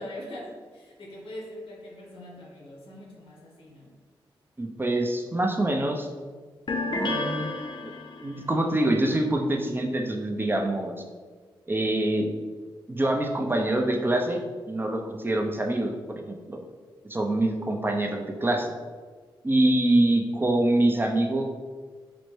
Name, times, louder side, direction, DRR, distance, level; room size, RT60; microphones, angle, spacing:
voice 1, 0.0-3.9, left 1 dB, 75° left, -3 dB, 1.0 m, -42 dB
voice 2, 4.6-6.1 6.9-7.5 7.8-7.9 8.2-10.9 11.7-12.3 12.9-14.4 14.7-16.6 17.1-18.7 19.4-21.4, right 1 dB, 25° right, 3 dB, 0.5 m, -25 dB
sound 1, 6.7-8.4, left 2 dB, 60° left, 0.5 m, -31 dB
4.0 x 2.1 x 3.1 m, 1.5 s
cardioid pair, 50°, 9 cm